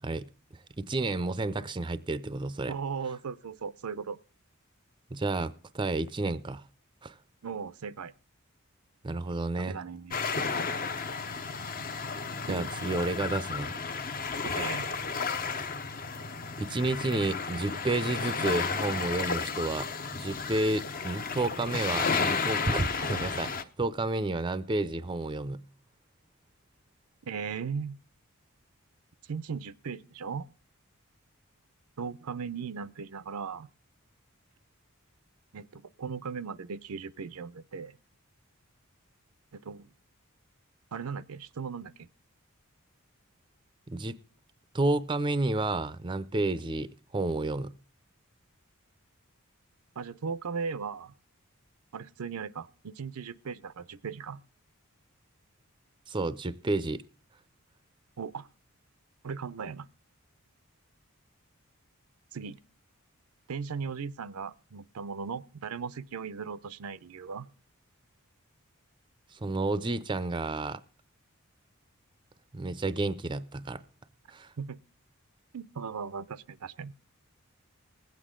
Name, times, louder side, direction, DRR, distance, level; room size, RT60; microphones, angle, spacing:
voice 1, 0.8-2.7 5.1-6.6 7.0-7.1 9.0-9.8 12.4-13.7 16.6-25.6 43.9-44.2 44.7-47.7 56.1-57.0 69.3-70.8 72.5-73.8 74.3-74.5, right 2 dB, 20° right, 0.5 m, -31 dB
voice 2, 2.7-4.2 7.4-8.1 9.6-10.2 12.5-12.7 14.4-14.9 27.2-28.0 29.3-30.5 32.0-33.7 35.5-38.0 39.5-39.9 40.9-42.1 50.0-51.1 51.9-54.4 58.2-58.5 59.2-59.9 62.3-62.6 63.5-67.5 74.6-74.8 75.5-76.9, right 5 dB, 80° right, 0.6 m, -37 dB
sound 1, 10.1-23.6, left 5 dB, 40° left, 0.8 m, -33 dB
20.5 x 8.3 x 3.7 m
head